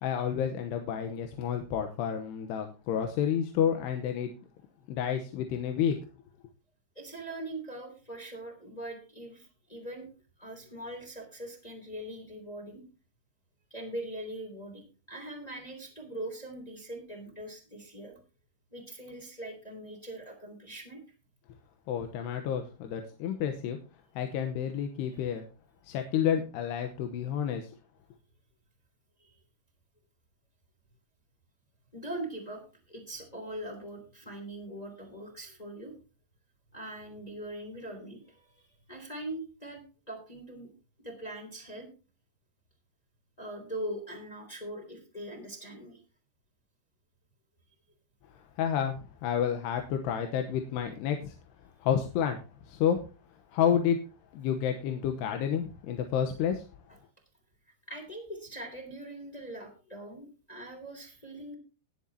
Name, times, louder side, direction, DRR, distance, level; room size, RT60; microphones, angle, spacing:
voice 1, 0.0-4.3 4.9-6.0 21.9-23.8 24.2-25.5 25.8-27.7 48.3-51.3 51.8-53.0 53.5-54.0 54.3-56.6, left 8 dB, 90° left, 5 dB, 3.1 m, -30 dB
voice 2, 6.9-10.1 10.4-12.8 13.7-18.2 18.7-21.0 25.1-25.3 29.2-29.3 31.9-35.9 36.7-39.8 40.1-40.7 41.0-41.9 43.4-46.0 57.9-61.5, right 1 dB, 10° left, 1 dB, 2.5 m, -41 dB
20.0 x 7.5 x 2.8 m, 0.33 s
omnidirectional pair, 4.7 m